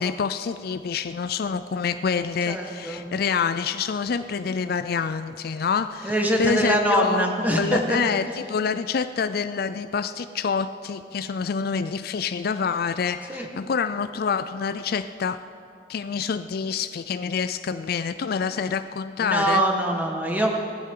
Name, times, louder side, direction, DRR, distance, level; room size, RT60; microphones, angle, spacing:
voice 1, 0.0-15.4 15.9-19.6, left 6 dB, 60° left, 11 dB, 0.4 m, -27 dB
voice 2, 2.4-3.1 6.0-8.0 13.3-13.5 19.2-20.6, right 1 dB, 10° right, 1 dB, 1.6 m, -23 dB
19.0 x 15.0 x 3.8 m, 2.4 s
head